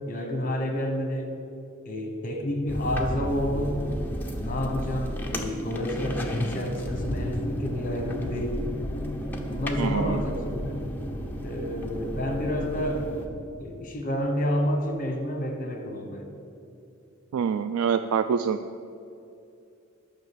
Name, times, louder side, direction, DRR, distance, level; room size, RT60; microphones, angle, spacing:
voice 1, 0.0-1.3 1.8-4.0 4.4-8.6 9.5-10.8 11.4-13.1 13.6-16.3, equal, 40° left, 4 dB, 1.1 m, -29 dB
sound 1, 2.7-13.3, equal, 10° left, 0.8 m, -32 dB
voice 2, 9.8-10.2 17.3-18.6, right 7 dB, 80° right, 10 dB, 0.3 m, -25 dB
10.5 x 5.8 x 7.8 m, 2.7 s
head